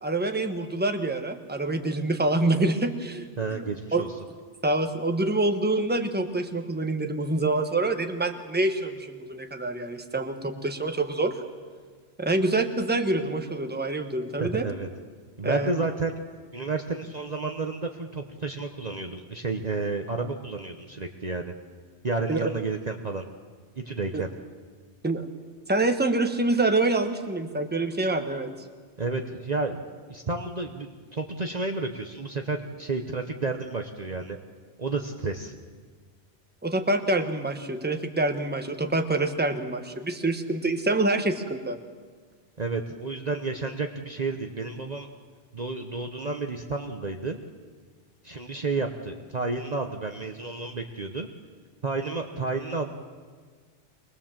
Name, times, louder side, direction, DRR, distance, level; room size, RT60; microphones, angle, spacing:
voice 1, 0.0-3.3 3.5-3.6 3.9-4.1 4.6-11.4 12.2-14.7 15.4-15.7 22.3-22.4 24.1-24.2 25.0-25.2 25.7-28.5 36.6-41.8, right 2 dB, 10° right, 6 dB, 1.2 m, -26 dB
voice 2, 3.4-4.1 14.4-14.9 15.4-16.2 16.5-21.5 22.0-23.2 23.8-24.3 29.0-29.8 30.1-34.4 34.8-35.6 42.6-45.1 45.5-47.4 48.2-51.3 51.8-52.9, right 3 dB, 40° right, 4 dB, 1.1 m, -31 dB
24.0 x 20.0 x 7.4 m, 1.5 s
omnidirectional pair, 1.2 m